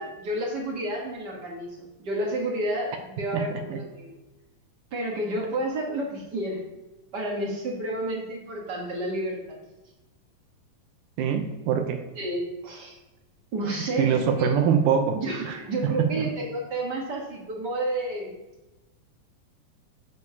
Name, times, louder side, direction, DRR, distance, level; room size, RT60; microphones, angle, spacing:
voice 1, 0.0-1.7 2.0-4.1 4.9-6.6 7.1-9.6 12.1-13.0 13.5-14.6 15.1-18.4, right 1 dB, 55° right, -1 dB, 1.2 m, -30 dB
voice 2, 3.3-3.8 11.2-12.0 14.0-15.2 15.4-16.3, right 7 dB, 75° right, 5 dB, 2.2 m, -24 dB
10.5 x 6.9 x 2.8 m, 1.0 s
omnidirectional pair, 3.8 m